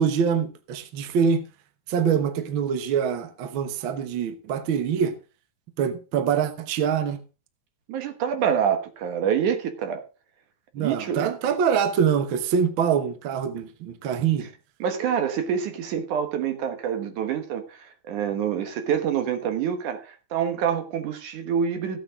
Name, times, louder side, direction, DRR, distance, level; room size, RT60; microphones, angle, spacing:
voice 1, 0.0-1.4 1.9-5.1 5.8-7.2 10.7-14.5, right 7 dB, 85° right, 1.1 m, -24 dB
voice 2, 7.9-10.0 10.8-11.3 14.8-22.0, right 8 dB, 65° right, 2.6 m, -26 dB
14.5 x 8.8 x 3.7 m
omnidirectional pair, 4.1 m